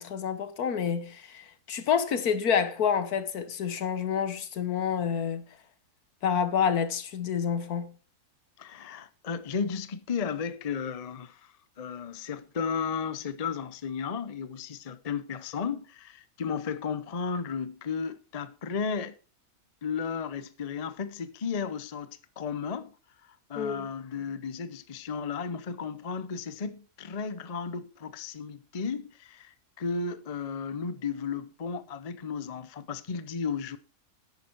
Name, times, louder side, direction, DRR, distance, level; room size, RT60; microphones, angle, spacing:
voice 1, 0.0-5.4 6.2-7.9 23.6-23.9, left 7 dB, 75° left, 1.6 m, -28 dB
voice 2, 8.6-19.1 19.8-22.9 23.5-33.8, left 6 dB, 35° left, 0.6 m, -34 dB
10.5 x 9.2 x 4.6 m
omnidirectional pair, 1.6 m